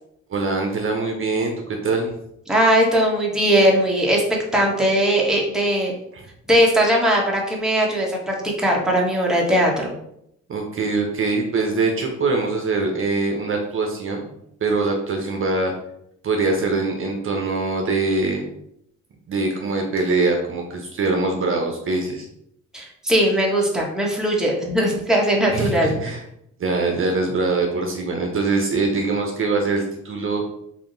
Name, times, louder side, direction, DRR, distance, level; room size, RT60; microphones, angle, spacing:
voice 1, 0.3-1.5 1.8-2.1 6.1-6.2 10.5-14.2 14.6-15.7 16.2-18.4 19.3-22.3 25.5-26.2 26.6-30.5, right 3 dB, 45° right, 2 dB, 0.7 m, -23 dB
voice 2, 2.5-4.2 4.5-5.9 6.5-9.9 22.7-25.9, equal, ahead, -2 dB, 1.0 m, -19 dB
3.5 x 2.6 x 3.9 m, 0.76 s
cardioid pair, 90°, 30 cm